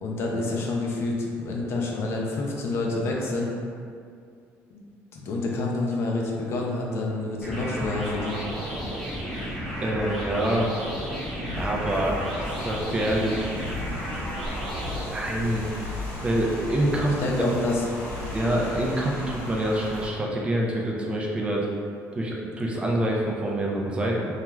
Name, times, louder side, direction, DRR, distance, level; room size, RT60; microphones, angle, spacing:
voice 1, 0.0-3.5 4.7-4.8 5.1-8.4 17.2-17.8, left 2 dB, 50° left, -2 dB, 0.4 m, -28 dB
sound 1, 7.4-15.0, equal, 5° right, 0.8 m, -33 dB
voice 2, 9.8-10.7 11.5-13.5 15.1-15.7 16.2-17.5 18.3-21.7 22.1-24.3, right 1 dB, 20° right, -2 dB, 0.3 m, -26 dB
sound 2, 11.4-13.1 13.6-17.6 18.1-18.9, left 3 dB, 90° right, 0.5 m, -40 dB
Rain, 11.5-20.1, equal, 70° left, 1.0 m, -38 dB
2.3 x 2.3 x 3.0 m, 2.3 s
cardioid pair, 130°, 6 cm